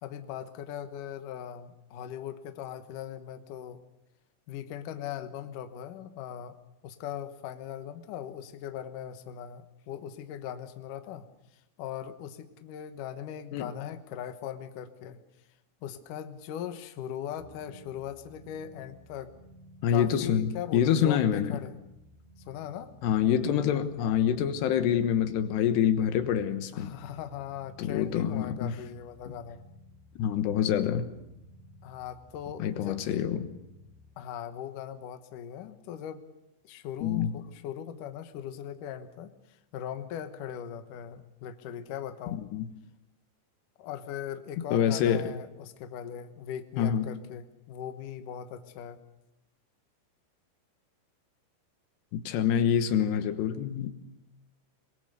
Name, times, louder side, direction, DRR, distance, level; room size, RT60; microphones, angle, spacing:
voice 1, 0.0-3.8 4.5-6.6 6.8-11.3 11.8-15.2 15.8-19.3 19.9-21.8 22.5-22.9 26.7-29.6 31.8-33.1 34.2-36.2 36.6-39.3 39.7-42.4 43.8-49.0, left 10 dB, 90° left, 8 dB, 1.8 m, -39 dB
sound 1, 17.4-34.0, equal, 10° right, 5.9 m, -55 dB
voice 2, 19.8-21.6 23.0-26.9 27.8-28.7 29.3-29.4 30.2-31.1 32.6-33.5 37.0-37.3 42.5-42.6 44.7-45.3 46.8-47.1 52.1-53.9, left 9 dB, 70° left, 9 dB, 3.0 m, -26 dB
23.0 x 23.0 x 6.8 m, 0.90 s
omnidirectional pair, 5.8 m